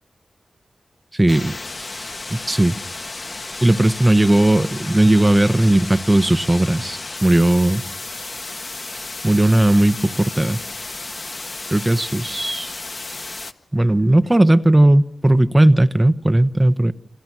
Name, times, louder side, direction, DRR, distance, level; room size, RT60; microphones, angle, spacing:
voice 1, 1.1-1.5 2.3-2.8 3.6-7.9 9.2-10.6 11.7-12.7 13.7-16.9, right 1 dB, 15° right, 1.1 m, -16 dB
sound 1, 1.3-13.5, left 3 dB, 40° left, 1.5 m, -33 dB
29.0 x 27.5 x 6.2 m
wide cardioid pair, 120°, 0 cm